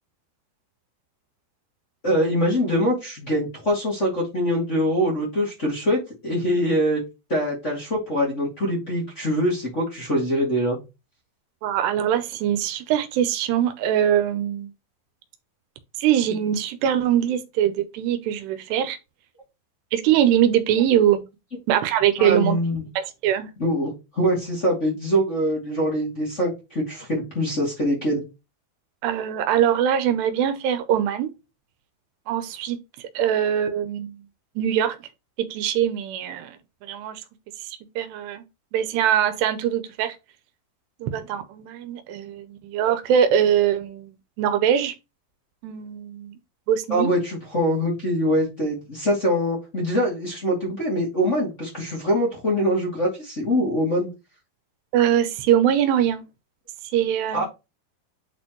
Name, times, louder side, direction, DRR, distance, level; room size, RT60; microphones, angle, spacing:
voice 1, 2.0-7.0 7.3-10.8 22.2-22.8 23.6-28.2 46.9-54.1 57.3-57.4, equal, 25° left, 1.8 m, -23 dB
voice 2, 11.6-14.7 16.0-19.0 19.9-21.2 21.7-22.6 23.0-23.5 29.0-31.3 32.3-34.2 34.6-35.0 35.5-36.6 36.8-37.2 37.6-38.4 38.7-40.2 41.0-44.9 45.6-46.4 46.7-47.1 54.9-56.2 56.9-57.4, right 10 dB, 90° right, 2.9 m, -22 dB
8.6 x 4.3 x 3.0 m
omnidirectional pair, 4.7 m